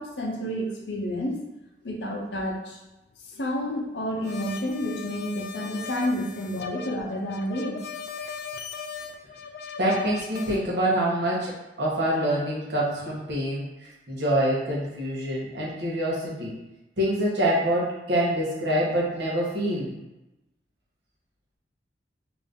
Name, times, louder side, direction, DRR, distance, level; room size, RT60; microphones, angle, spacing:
voice 1, 0.0-1.4 1.8-2.8 3.3-7.8, equal, 80° left, 0 dB, 0.7 m, -30 dB
sound 1, 4.2-10.6, left 6 dB, 60° left, 0.3 m, -38 dB
voice 2, 9.8-11.5 11.8-16.5 17.0-19.9, right 1 dB, 75° right, -6 dB, 1.1 m, -26 dB
3.1 x 2.6 x 3.6 m, 0.98 s
head